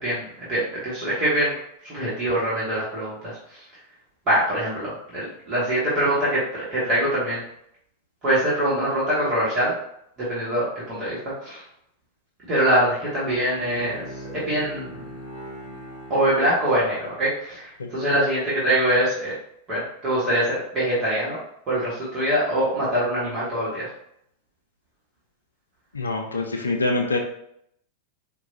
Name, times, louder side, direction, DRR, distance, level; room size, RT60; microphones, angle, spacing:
voice 1, 0.0-1.6 1.8-3.4 4.3-7.4 8.2-9.7 10.2-11.6 12.5-14.0 14.3-15.0 16.1-19.3 19.7-21.4 21.7-23.9, right 1 dB, 30° right, -9 dB, 1.3 m, -24 dB
Bowed string instrument, 13.0-17.0, equal, 55° right, 1.0 m, -40 dB
voice 2, 25.9-27.2, left 2 dB, 75° left, 4 dB, 0.4 m, -25 dB
4.6 x 2.3 x 2.7 m, 0.72 s
figure-of-eight pair, 90°, 0 cm